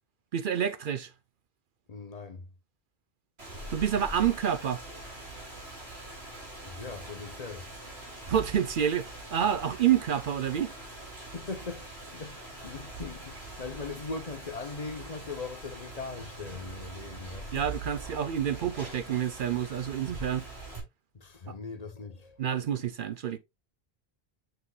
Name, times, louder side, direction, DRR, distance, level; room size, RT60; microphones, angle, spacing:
voice 1, 0.3-1.1 3.7-4.8 8.3-10.7 17.5-20.4 21.5-21.6 22.4-23.4, right 9 dB, 60° right, 0.7 m, -28 dB
voice 2, 1.9-2.4 6.6-7.7 11.3-17.6 21.1-22.4, left 4 dB, 40° left, 0.8 m, -40 dB
Rain, 3.4-20.8, right 2 dB, 80° right, 3.2 m, -43 dB
6.9 x 6.1 x 2.3 m
omnidirectional pair, 1.1 m